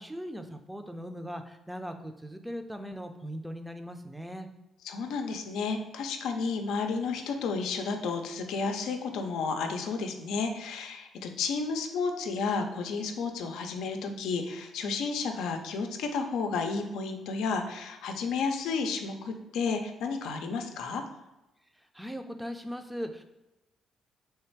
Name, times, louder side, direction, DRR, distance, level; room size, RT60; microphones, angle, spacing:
voice 1, 0.0-4.5 21.8-23.2, equal, 5° right, 6 dB, 0.5 m, -39 dB
voice 2, 4.8-21.0, left 4 dB, 85° left, 5 dB, 0.5 m, -32 dB
3.4 x 3.2 x 4.5 m, 0.98 s
cardioid pair, 90°, 0 cm